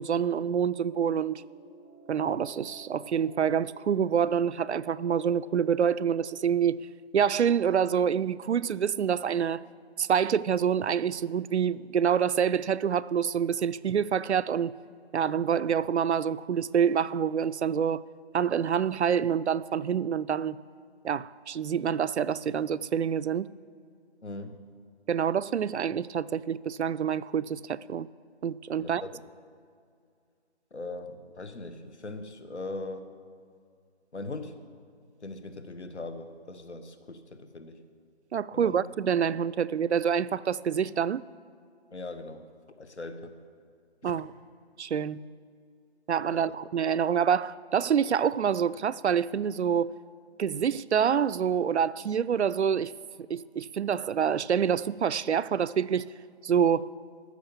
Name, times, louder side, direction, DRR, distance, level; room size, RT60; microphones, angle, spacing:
voice 1, 0.0-1.4 2.1-6.8 7.1-9.6 10.0-14.7 15.1-18.0 18.3-20.6 21.0-23.5 25.1-28.1 28.4-29.0 38.3-41.3 44.0-44.3 44.8-45.2 46.1-49.9 50.4-52.9 53.3-56.1 56.4-56.9, right 8 dB, 80° right, 0.5 m, -27 dB
sound 1, 0.9-6.3, right 1 dB, 20° left, 0.6 m, -52 dB
voice 2, 24.2-24.6 28.8-29.2 30.7-33.1 34.1-34.5 35.2-37.8 38.5-38.8 41.9-42.5 42.8-43.3 44.0-44.2 46.3-46.5, left 2 dB, 85° left, 1.3 m, -40 dB
14.0 x 6.4 x 7.0 m
figure-of-eight pair, 165°, 33 cm